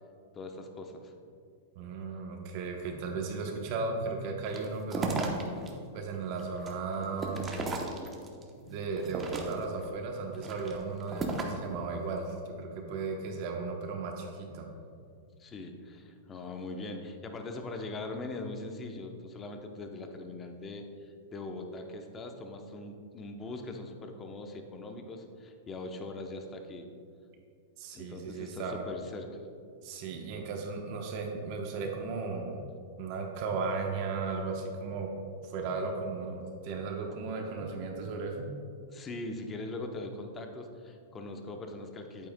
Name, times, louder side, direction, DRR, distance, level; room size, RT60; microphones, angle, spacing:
voice 1, 0.3-1.1 15.4-26.9 27.9-29.4 38.9-42.3, left 2 dB, 20° left, 4 dB, 0.7 m, -41 dB
voice 2, 1.8-5.3 5.9-7.5 8.6-14.7 27.8-28.9 29.8-32.7 33.0-35.1 35.4-38.5, right 4 dB, 50° right, 2 dB, 0.9 m, -35 dB
sound 1, 4.5-5.7 6.1-8.4 8.9-9.8 10.3-11.7, right 3 dB, 20° right, 0.8 m, -35 dB
8.6 x 8.6 x 2.2 m, 2.3 s
hypercardioid pair, 135°, 0 cm